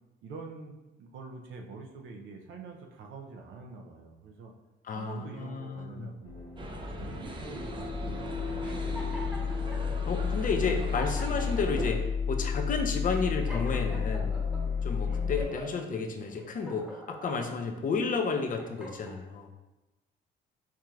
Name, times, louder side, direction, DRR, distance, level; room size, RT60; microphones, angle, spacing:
voice 1, 0.2-4.5 4.9-6.5 7.0-9.3 15.2-15.5, right 4 dB, 75° right, 2 dB, 0.6 m, -46 dB
voice 2, 4.8-6.1 10.0-14.4 14.8-19.5, left 4 dB, 40° left, 4 dB, 0.5 m, -32 dB
sound 1, 6.2-15.4, left 6 dB, 85° left, 0.8 m, -32 dB
sound 2, 6.6-11.9, right 2 dB, 25° right, 0.5 m, -40 dB
sound 3, 8.6-9.8 10.5-10.6 10.8-11.9 12.4-12.6 13.1-14.6 15.1-15.8 16.3-17.6 18.2-19.2, equal, 5° right, 1.0 m, -44 dB
4.7 x 2.8 x 2.4 m, 1.0 s
cardioid pair, 90°, 20 cm